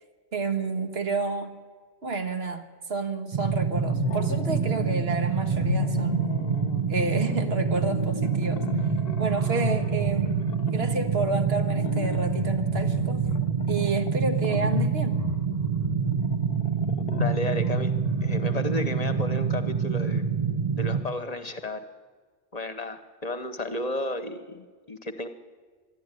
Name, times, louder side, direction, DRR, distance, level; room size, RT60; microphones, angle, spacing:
voice 1, 0.3-1.5 2.0-6.3 6.9-8.6 9.2-10.4 10.7-13.2 13.7-15.2, right 3 dB, 70° right, 6 dB, 1.7 m, -30 dB
sound 1, 3.3-21.0, right 6 dB, 35° right, 1.4 m, -27 dB
sound 2, 3.8-5.1 5.5-19.4, left 9 dB, 65° left, 0.9 m, -35 dB
voice 2, 17.1-17.9 18.2-20.3 20.8-21.8 22.5-25.3, left 2 dB, 40° left, 10 dB, 1.1 m, -33 dB
25.5 x 11.5 x 9.8 m, 1.5 s
omnidirectional pair, 1.1 m